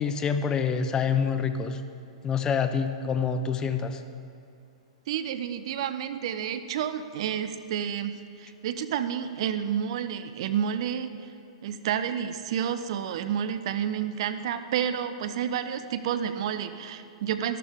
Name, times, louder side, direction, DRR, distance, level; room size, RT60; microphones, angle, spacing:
voice 1, 0.0-1.8 2.2-4.0, left 6 dB, 20° left, 9 dB, 0.7 m, -26 dB
voice 2, 5.1-11.3 11.6-17.6, right 9 dB, 60° right, 11 dB, 0.7 m, -30 dB
13.0 x 12.5 x 3.6 m, 2.7 s
hypercardioid pair, 120°, 3 cm